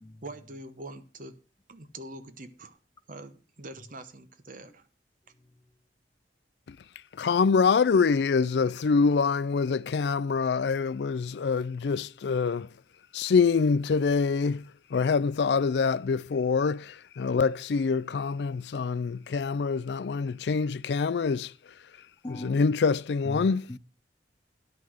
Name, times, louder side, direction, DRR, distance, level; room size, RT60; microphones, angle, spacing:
voice 1, 0.2-1.4 1.7-2.8 3.1-4.9, right 2 dB, 50° right, 1.0 m, -44 dB
voice 2, 7.2-12.7 13.1-14.6 14.9-21.5 22.3-23.7, left 5 dB, 70° left, 0.4 m, -25 dB
voice 3, 22.2-22.6 23.2-23.8, left 1 dB, 20° left, 0.5 m, -39 dB
10.5 x 5.8 x 6.3 m
head